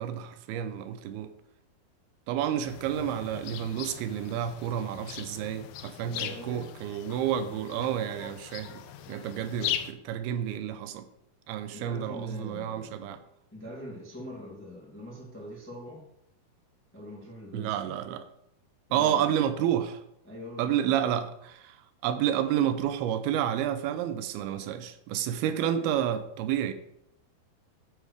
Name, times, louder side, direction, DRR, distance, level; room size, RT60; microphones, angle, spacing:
voice 1, 0.0-1.3 2.3-11.1 11.5-13.2 17.5-18.2 18.9-20.0 20.6-21.8 22.0-26.7, right 10 dB, 85° right, 2.5 m, -30 dB
sound 1, 2.7-9.9, left 11 dB, 80° left, 2.2 m, -39 dB
voice 2, 6.0-6.9 11.7-13.2 13.5-16.1 16.9-17.9 18.9-19.3 20.2-21.0, left 1 dB, 5° left, 1.1 m, -43 dB
9.5 x 3.3 x 6.4 m
omnidirectional pair, 4.5 m